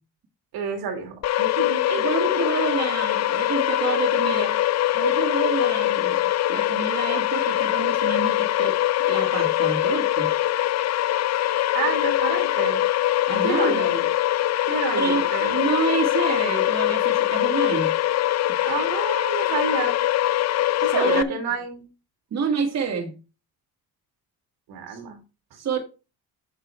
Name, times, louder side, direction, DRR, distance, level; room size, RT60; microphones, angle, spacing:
voice 1, 0.5-2.1 11.7-12.8 13.4-14.1 14.7-15.6 18.6-19.9 20.8-21.8 24.7-25.2, right 5 dB, 75° right, 4 dB, 2.8 m, -29 dB
sound 1, 1.2-21.2, left 14 dB, 45° left, 0.5 m, -23 dB
voice 2, 1.9-4.6 4.9-6.2 6.5-8.8 9.1-10.3 13.3-13.9 15.0-17.9 20.9-21.4 22.3-23.1 24.9-25.0 25.5-25.8, right 5 dB, 45° right, 2 dB, 2.3 m, -28 dB
9.1 x 6.6 x 3.4 m, 0.30 s
cardioid pair, 115°, 37 cm